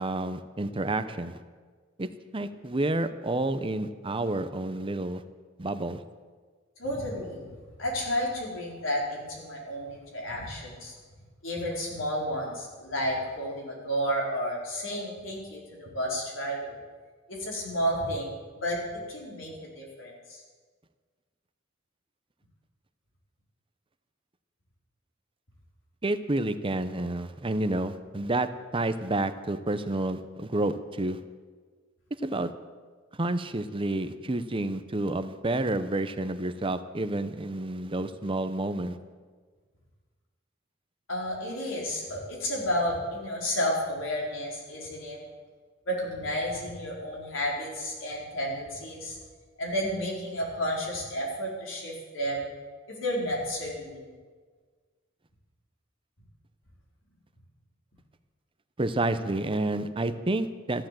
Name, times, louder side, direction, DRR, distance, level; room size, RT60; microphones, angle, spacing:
voice 1, 0.0-1.3 2.0-2.1 2.3-5.2 5.6-6.0 26.0-28.5 28.7-31.2 32.2-32.5 33.2-39.0 58.8-60.9, right 2 dB, 25° right, 11 dB, 0.8 m, -29 dB
voice 2, 6.8-7.4 7.8-10.9 11.4-16.8 17.3-18.8 19.1-20.4 41.1-45.2 45.9-49.2 49.6-52.5 52.9-54.1, equal, 75° left, -2 dB, 4.4 m, -31 dB
14.0 x 11.0 x 7.7 m, 1.5 s
head